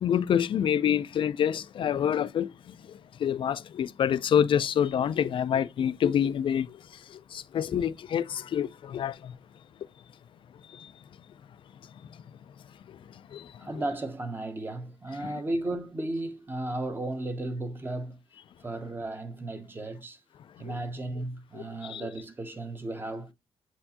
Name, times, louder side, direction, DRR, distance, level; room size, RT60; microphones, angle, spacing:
voice 1, 0.0-9.4 10.7-10.9 12.9-13.0 13.3-13.5 15.2-15.3 20.6-20.7 21.5-21.6 21.9-22.1, left 9 dB, 50° left, 0.4 m, -27 dB
voice 2, 13.6-18.2 18.6-20.2 20.6-23.3, right 2 dB, 20° right, 0.9 m, -34 dB
7.7 x 4.4 x 2.8 m
wide cardioid pair, 160°, 11 cm